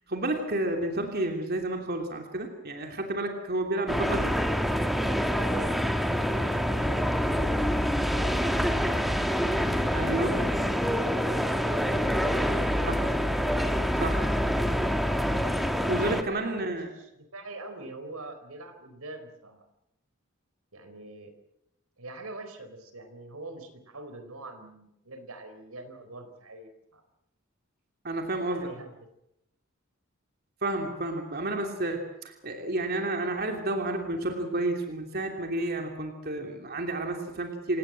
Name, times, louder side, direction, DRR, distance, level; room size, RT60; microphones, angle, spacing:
voice 1, 0.1-4.4 9.9-10.3 12.8-13.0 14.0-14.2 15.9-16.9 28.0-28.7 30.6-37.8, right 2 dB, 45° right, 3 dB, 3.0 m, -30 dB
sound 1, 3.9-16.2, equal, ahead, 1.5 m, -26 dB
voice 2, 5.3-7.6 8.1-9.0 16.0-19.7 20.7-21.3 22.0-27.0 28.5-28.9, right 2 dB, 80° right, 8 dB, 4.4 m, -44 dB
27.5 x 18.5 x 7.7 m, 0.82 s
head